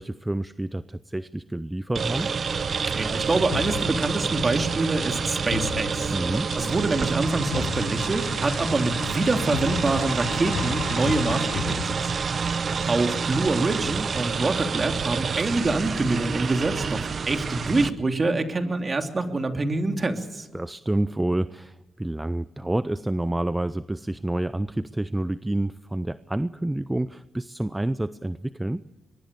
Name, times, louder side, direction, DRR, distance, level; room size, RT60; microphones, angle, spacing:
voice 1, 0.0-2.3 6.1-6.5 12.2-12.9 20.5-28.8, right 1 dB, 15° right, 14 dB, 0.7 m, -29 dB
sound 1, 1.9-17.9, right 5 dB, 50° right, 1.0 m, -28 dB
voice 2, 2.9-6.1 6.5-12.0 12.3-20.5, right 2 dB, 35° right, 5 dB, 3.0 m, -26 dB
sound 2, 3.5-12.5, left 12 dB, 90° left, 0.6 m, -36 dB
23.0 x 22.0 x 6.8 m, 1.1 s
cardioid pair, 65°, 0 cm